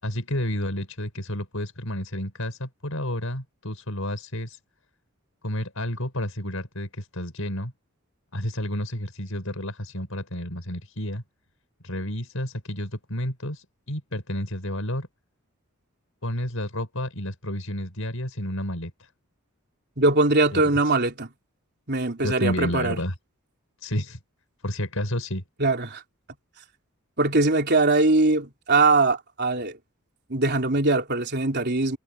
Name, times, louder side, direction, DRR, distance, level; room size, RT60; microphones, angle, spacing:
voice 1, 0.0-4.6 5.4-7.7 8.3-11.2 11.8-15.1 16.2-19.1 20.5-20.9 22.2-23.1 23.8-24.2 24.6-25.4, left 1 dB, 70° left, 6.3 m, -31 dB
voice 2, 20.0-21.3 21.9-23.0 25.6-26.0 27.2-29.8 30.3-32.0, right 3 dB, 50° right, 3.8 m, -21 dB
head